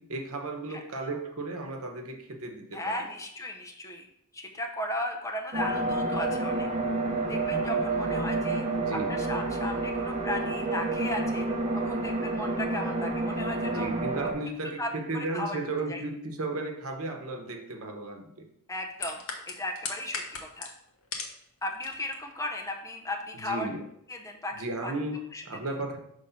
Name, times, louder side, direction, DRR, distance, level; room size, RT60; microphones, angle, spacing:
voice 1, 0.0-3.1 8.8-9.2 13.6-18.5 23.4-23.8 24.5-26.0, right 2 dB, 75° right, 3 dB, 0.9 m, -35 dB
voice 2, 2.7-4.1 4.3-6.7 7.3-8.6 9.1-11.5 11.8-13.9 14.8-15.6 15.9-16.0 18.7-19.2 19.5-20.7 21.6-23.7 24.1-24.5 24.8-24.9 25.3-25.4, left 1 dB, 15° left, 3 dB, 0.6 m, -35 dB
sound 1, 5.5-14.3, right 3 dB, 30° right, 0.8 m, -29 dB
Keyboard (musical), 5.6-7.8, left 4 dB, 85° left, 0.5 m, -36 dB
sound 2, 18.9-21.4 21.7-22.2 22.5-22.7, left 5 dB, 70° left, 1.0 m, -37 dB
5.4 x 3.2 x 5.6 m, 0.75 s
head